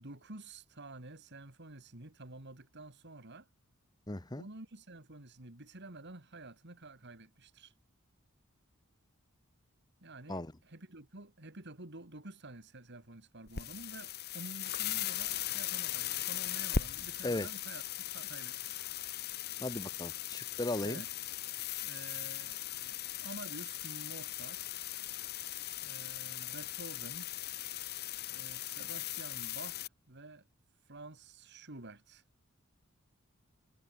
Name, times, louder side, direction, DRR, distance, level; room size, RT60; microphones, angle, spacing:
voice 1, 0.0-3.5 4.4-7.7 10.0-17.8 18.1-18.8 20.8-21.1 21.8-24.8 25.8-27.3 28.3-30.4 30.9-32.2, right 2 dB, 55° right, 2.8 m, -50 dB
voice 2, 4.1-4.4 10.3-10.5 17.2-17.5 19.6-21.0, left 2 dB, 20° left, 1.1 m, -36 dB
sound 1, 13.5-29.9, left 10 dB, 50° left, 1.4 m, -39 dB
head